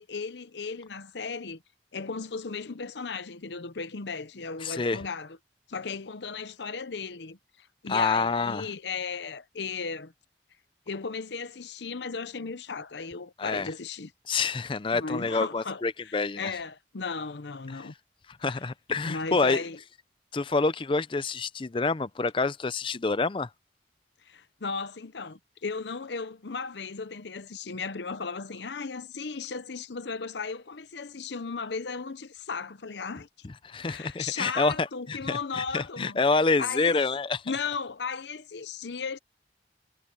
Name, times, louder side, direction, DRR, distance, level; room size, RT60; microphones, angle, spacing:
voice 1, 0.0-1.6 1.9-5.4 5.7-10.1 10.9-14.1 14.9-17.9 18.5-18.6 19.0-19.8 24.2-33.3 33.8-36.2 36.6-37.0 37.4-39.2, left 5 dB, 75° left, 0.8 m, -36 dB
voice 2, 4.6-5.0 7.9-8.7 13.4-13.7 14.3-16.5 17.7-17.9 18.4-19.6 20.3-23.5 33.6-37.4, left 3 dB, 30° left, 0.5 m, -27 dB
head